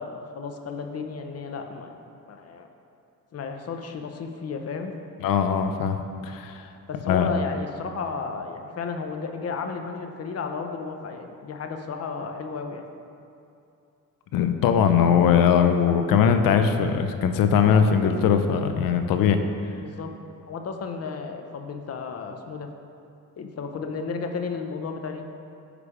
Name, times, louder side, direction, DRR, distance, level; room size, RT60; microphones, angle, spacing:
voice 1, 0.0-1.9 2.3-2.7 3.3-4.9 6.9-12.8 19.8-20.1 20.5-22.7 23.4-25.3, left 5 dB, 45° left, 5 dB, 0.7 m, -33 dB
voice 2, 5.2-6.6 7.1-7.3 14.3-19.4, left 7 dB, 85° left, 7 dB, 0.6 m, -20 dB
9.8 x 3.4 x 4.9 m, 2.6 s
cardioid pair, 90°, 33 cm